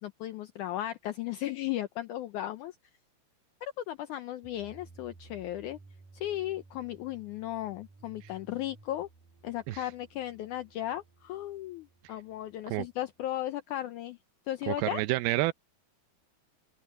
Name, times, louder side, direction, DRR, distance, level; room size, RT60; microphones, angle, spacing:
voice 1, 0.0-2.8 3.6-5.8 6.1-9.1 9.4-14.2 14.5-15.0, left 13 dB, 90° left, 1.8 m, -36 dB
sound 1, 4.4-13.3, right 3 dB, 65° right, 4.8 m, -57 dB
voice 2, 14.7-15.5, right 19 dB, 85° right, 2.6 m, -29 dB
omnidirectional pair, 4.4 m